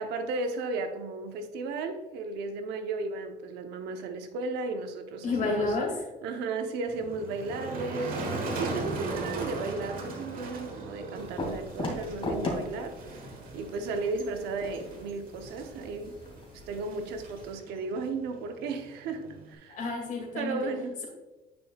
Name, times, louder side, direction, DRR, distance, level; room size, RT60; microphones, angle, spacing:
voice 1, 0.0-5.7 6.2-16.2 16.7-19.8 20.4-21.0, right 3 dB, 85° right, 6 dB, 0.8 m, -35 dB
voice 2, 5.2-6.0 19.7-20.7, left 3 dB, 50° left, 1 dB, 2.2 m, -30 dB
Motor vehicle (road), 6.9-19.5, right 2 dB, 55° right, 1.4 m, -39 dB
sound 1, 11.1-17.5, left 2 dB, 30° left, 2.3 m, -39 dB
10.0 x 5.2 x 2.4 m, 1.1 s
cardioid pair, 110°, 17 cm